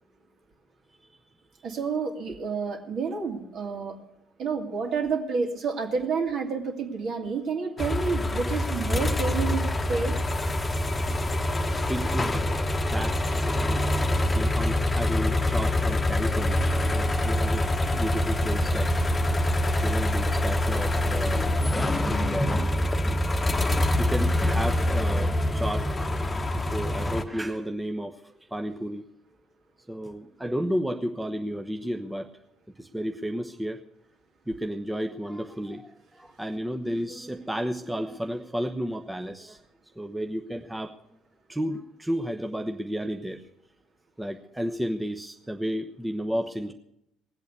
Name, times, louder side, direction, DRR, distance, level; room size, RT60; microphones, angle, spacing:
voice 1, 1.6-3.9 4.4-10.2, right 5 dB, 50° right, 3 dB, 2.5 m, -29 dB
sound 1, 7.8-27.2, left 1 dB, 20° left, 1.2 m, -25 dB
voice 2, 11.7-12.4 12.9-13.6 14.3-16.6 16.9-18.9 19.8-22.5 23.1-23.2 23.9-26.0 26.5-29.0 29.9-32.3 32.8-33.8 34.5-39.6 40.0-41.0 41.5-43.4 44.2-46.7, equal, 10° right, 4 dB, 1.0 m, -32 dB
19.5 x 8.3 x 6.8 m, 0.81 s
figure-of-eight pair, 55°, 0 cm